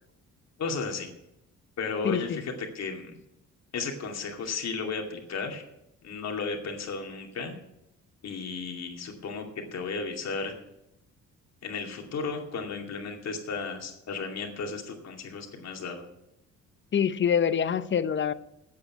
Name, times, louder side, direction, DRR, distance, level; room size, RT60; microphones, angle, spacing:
voice 1, 0.6-1.1 1.8-3.2 3.7-5.6 6.0-7.5 8.2-9.5 9.7-10.5 11.6-16.1, left 4 dB, 60° left, 2.5 m, -34 dB
voice 2, 2.0-2.4 16.9-18.3, left 8 dB, 40° left, 0.7 m, -25 dB
8.6 x 8.3 x 9.0 m
cardioid pair, 90°, 30 cm